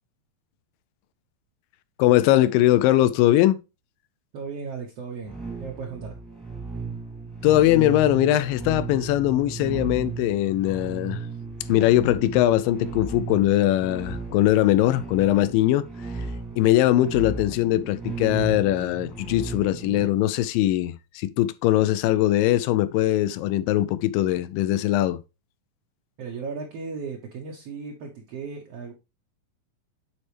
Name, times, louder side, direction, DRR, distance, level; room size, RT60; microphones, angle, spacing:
voice 1, 2.0-3.6 7.4-11.2 11.7-15.9 16.6-25.2, left 14 dB, 80° left, 2.1 m, -21 dB
voice 2, 4.3-6.1 26.2-28.9, right 5 dB, 75° right, 1.4 m, -36 dB
sound 1, 5.2-20.1, right 4 dB, ahead, 0.9 m, -35 dB
9.9 x 4.2 x 3.2 m
omnidirectional pair, 4.2 m